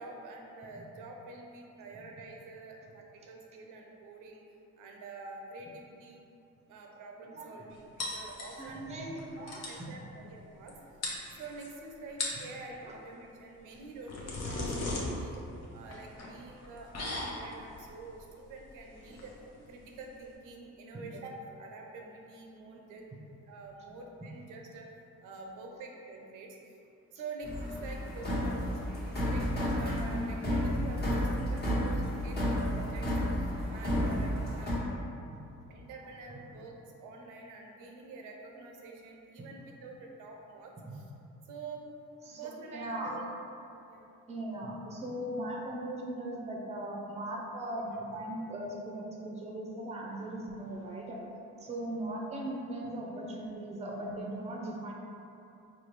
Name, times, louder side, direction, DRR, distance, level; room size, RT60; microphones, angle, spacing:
voice 1, 0.0-4.4 4.8-6.2 6.7-8.9 9.4-10.7 11.4-15.4 15.7-19.3 19.7-23.0 23.5-24.9 25.2-26.6 27.1-33.1 33.7-35.0 35.7-41.0 41.5-41.8 42.4-43.3 43.6-44.1, right 3 dB, 90° right, 1 dB, 0.6 m, -47 dB
sound 1, 8.0-8.9 9.2-9.3 9.5-9.8 10.7-10.8 11.0-11.7 12.1-12.5 13.7-20.3, left 2 dB, 55° left, 0.8 m, -38 dB
voice 2, 8.6-9.9 12.8-12.9 20.9-21.0 40.9-41.0 42.2-42.4 42.7-43.1 44.3-51.2 51.6-54.9, right 1 dB, 20° right, -1 dB, 0.5 m, -38 dB
sound 2, 27.4-34.7, equal, 35° left, 1.2 m, -31 dB
4.0 x 2.3 x 3.1 m, 2.7 s
cardioid pair, 90°, 30 cm